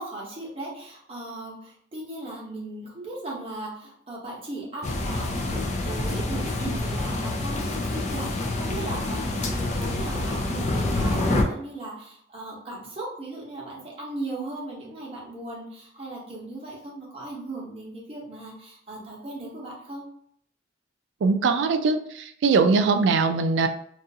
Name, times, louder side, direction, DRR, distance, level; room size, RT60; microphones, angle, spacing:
voice 1, 0.0-20.1, right 2 dB, 30° right, -5 dB, 0.8 m, -37 dB
sound 1, 4.8-11.4, left 2 dB, 40° left, 0.4 m, -27 dB
voice 2, 21.2-23.7, right 4 dB, 75° right, 7 dB, 0.3 m, -21 dB
2.4 x 2.3 x 2.7 m, 0.67 s
head